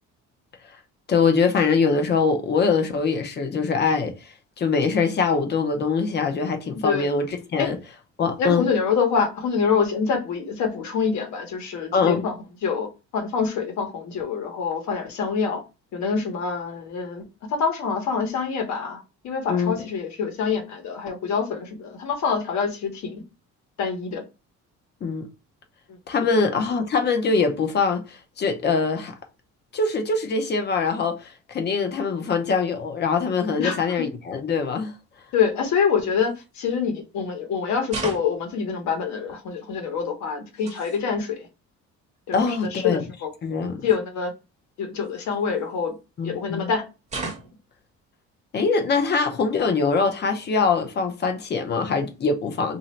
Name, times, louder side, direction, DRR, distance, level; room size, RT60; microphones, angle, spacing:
voice 1, 1.1-7.8 8.2-8.7 11.9-12.2 19.5-19.8 25.0-25.3 26.1-29.1 29.7-34.9 42.3-43.0 43.4-43.8 46.2-46.7 48.5-52.8, left 4 dB, 35° left, 0.7 m, -23 dB
voice 2, 8.4-12.4 12.6-12.9 13.1-15.6 15.9-23.2 23.8-24.2 26.3-26.4 33.6-33.8 35.3-41.5 42.3-43.3 43.8-44.3 44.8-45.9 46.2-46.8, left 6 dB, 65° left, 1.2 m, -26 dB
sound 1, 36.2-36.4 37.9-38.5 40.3-41.0 42.2-42.3 42.5-42.7 43.9-44.0 45.0-46.0 47.1-47.7, right 3 dB, 25° right, 0.9 m, -35 dB
3.0 x 2.7 x 4.3 m
cardioid pair, 160°, 31 cm